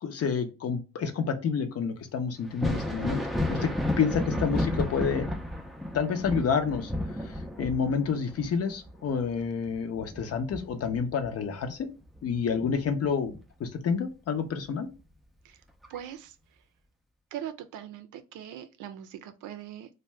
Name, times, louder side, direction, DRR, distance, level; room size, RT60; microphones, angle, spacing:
voice 1, 0.0-3.2 3.5-3.7 4.0-5.3 5.9-6.9 7.2-11.9 12.2-13.3 13.6-14.9, left 6 dB, 55° left, 0.6 m, -29 dB
Thunder, 2.4-11.8 12.2-13.4 14.9-15.0 15.8-16.0, left 1 dB, ahead, 0.4 m, -32 dB
voice 2, 15.9-16.3 17.3-19.9, right 10 dB, 80° right, 0.5 m, -41 dB
2.6 x 2.2 x 3.2 m
cardioid pair, 90°, 30 cm